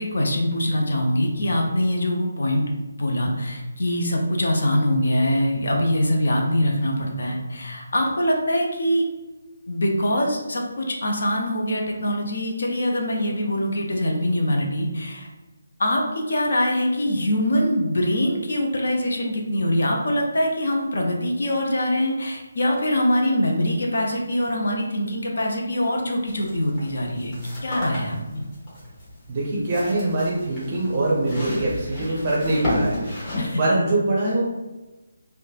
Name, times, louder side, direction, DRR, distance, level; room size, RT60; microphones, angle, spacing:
voice 1, 0.0-2.7 3.0-9.0 9.7-15.3 15.8-27.3 27.6-28.4 33.4-33.6, left 1 dB, 55° left, 0 dB, 0.5 m, -23 dB
sound 1, 26.3-33.5, left 1 dB, 20° left, 1.0 m, -33 dB
voice 2, 29.3-33.2 33.6-34.4, right 2 dB, 30° right, -4 dB, 0.5 m, -23 dB
3.1 x 2.1 x 2.3 m, 1.1 s
figure-of-eight pair, 150°, 0 cm